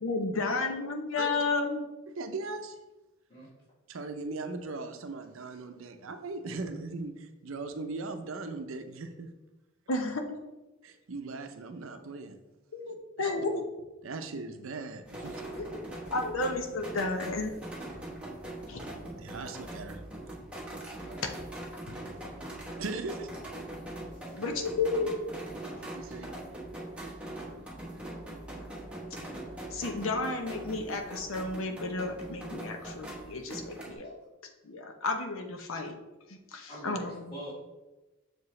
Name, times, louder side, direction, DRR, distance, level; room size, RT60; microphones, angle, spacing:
voice 1, 0.0-1.9 9.9-10.4 12.7-13.7 15.6-17.5 18.7-18.8 24.3-25.1 29.7-34.2 34.6-35.9 36.3-37.3, left 3 dB, 70° left, 4 dB, 0.8 m, -32 dB
voice 2, 2.2-2.8 3.9-9.3 10.8-12.4 13.2-13.3 14.0-15.3 19.0-20.0 22.8-23.3 25.9-26.3, right 3 dB, 75° right, 8 dB, 0.6 m, -39 dB
sound 1, 15.0-33.9, right 1 dB, 5° right, 1.1 m, -42 dB
voice 3, 21.0-21.4 24.2-24.3 26.0-26.2 34.0-34.1 36.7-37.5, right 1 dB, 45° left, -10 dB, 2.1 m, -45 dB
6.4 x 4.8 x 3.2 m, 1.1 s
head